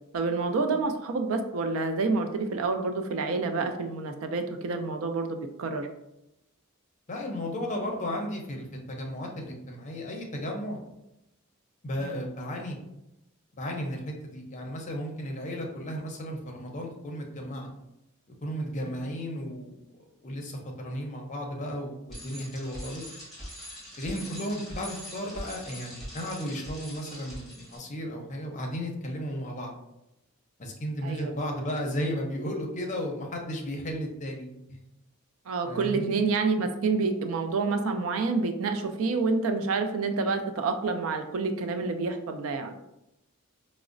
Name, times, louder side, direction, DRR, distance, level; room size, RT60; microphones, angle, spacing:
voice 1, 0.1-5.9 12.0-12.2 18.8-18.9 31.0-31.3 35.5-42.7, right 4 dB, 70° right, 7 dB, 0.4 m, -28 dB
voice 2, 7.1-10.8 11.8-12.8 13.5-17.7 18.4-19.8 20.2-23.1 23.9-29.7 30.6-34.8 35.6-36.1, equal, 35° left, 1 dB, 0.6 m, -34 dB
Bicycle, 22.1-27.8, equal, ahead, 1.2 m, -42 dB
4.7 x 2.0 x 2.5 m, 0.88 s
head